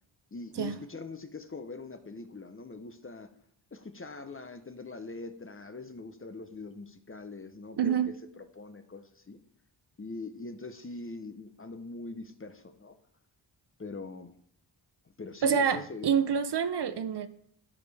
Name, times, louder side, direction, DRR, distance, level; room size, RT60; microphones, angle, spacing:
voice 1, 0.3-3.3 3.7-9.4 10.0-13.0 13.8-14.3 15.2-16.1, left 3 dB, 25° left, 9 dB, 0.7 m, -42 dB
voice 2, 7.8-8.1 15.4-17.3, right 7 dB, 60° right, 12 dB, 0.6 m, -27 dB
13.5 x 5.1 x 3.4 m, 0.66 s
wide cardioid pair, 75°, 48 cm